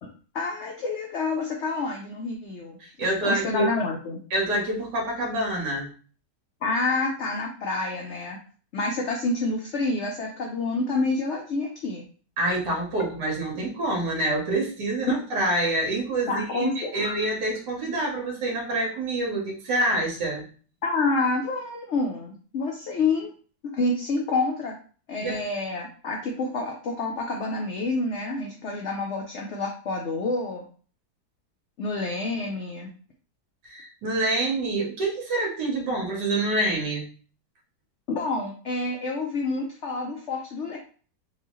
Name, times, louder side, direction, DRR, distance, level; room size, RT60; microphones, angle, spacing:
voice 1, 0.0-2.8 3.2-4.2 6.6-8.4 8.7-12.0 13.5-13.6 15.0-15.1 16.3-17.1 20.8-23.3 23.7-24.7 25.1-30.6 31.8-32.9 38.1-40.8, left 3 dB, 80° left, 1 dB, 0.6 m, -28 dB
voice 2, 2.8-3.7 4.3-5.9 12.4-20.5 25.2-25.5 33.6-37.0, right 2 dB, 75° right, -1 dB, 1.6 m, -27 dB
3.9 x 2.3 x 3.0 m, 0.41 s
omnidirectional pair, 1.8 m